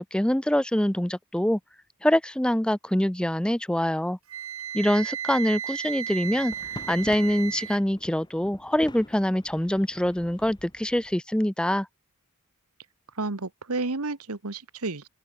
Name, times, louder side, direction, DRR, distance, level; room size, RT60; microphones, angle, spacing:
voice 1, 0.0-1.6 2.0-4.2 4.7-6.5 6.9-11.9, left 1 dB, 5° left, 0.6 m, -24 dB
Wind instrument woodwind instrument, 4.3-7.8, right 9 dB, 70° right, 1.8 m, -34 dB
sound 1, 6.2-11.2, left 1 dB, 20° left, 5.2 m, -46 dB
voice 2, 13.2-15.1, right 3 dB, 90° right, 1.5 m, -31 dB
open air
head